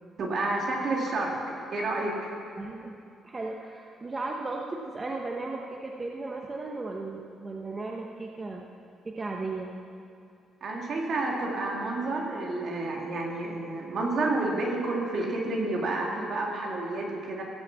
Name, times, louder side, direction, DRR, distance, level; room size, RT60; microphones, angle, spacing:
voice 1, 0.2-2.3 10.6-17.4, right 2 dB, 60° right, -1 dB, 2.8 m, -30 dB
voice 2, 2.6-3.0 3.2-8.6 9.0-9.7, right 3 dB, 30° right, 0 dB, 1.0 m, -35 dB
16.5 x 7.2 x 7.3 m, 2.5 s
cardioid pair, 90°, 0 cm